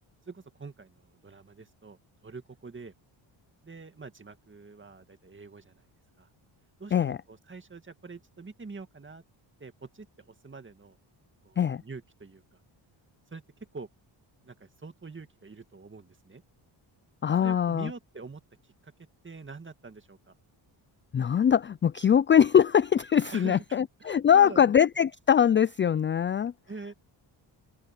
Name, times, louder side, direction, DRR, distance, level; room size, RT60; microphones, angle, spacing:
voice 1, 0.3-2.9 3.6-5.9 6.2-6.3 6.8-9.2 9.6-11.0 11.4-12.6 13.3-13.4 13.7-13.9 14.4-16.4 17.4-18.4 18.8-18.9 19.2-20.3 23.3-24.7 26.7-26.9, right 4 dB, 25° right, 2.1 m, -45 dB
voice 2, 17.2-17.9 21.1-26.5, left 8 dB, 25° left, 0.3 m, -22 dB
open air
cardioid pair, 95°, 49 cm